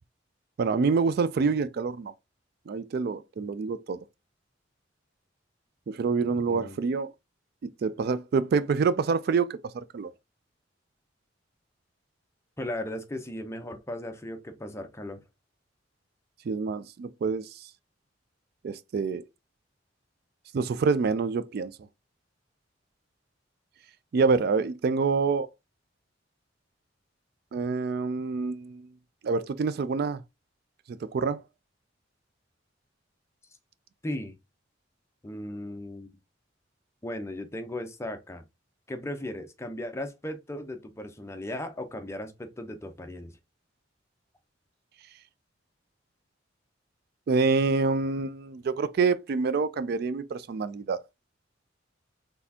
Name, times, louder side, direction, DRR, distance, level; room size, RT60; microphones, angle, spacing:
voice 1, 0.6-2.1 2.7-4.0 5.9-7.1 7.6-10.1 16.5-17.7 18.6-19.2 20.5-21.7 24.1-25.5 27.5-28.9 29.2-30.2 30.9-31.4 47.3-51.0, right 4 dB, 55° right, 0.3 m, -27 dB
voice 2, 12.6-15.2 34.0-34.4 35.2-36.1 37.0-38.4 38.9-43.3, left 1 dB, 15° left, 0.6 m, -36 dB
4.1 x 3.5 x 2.7 m
head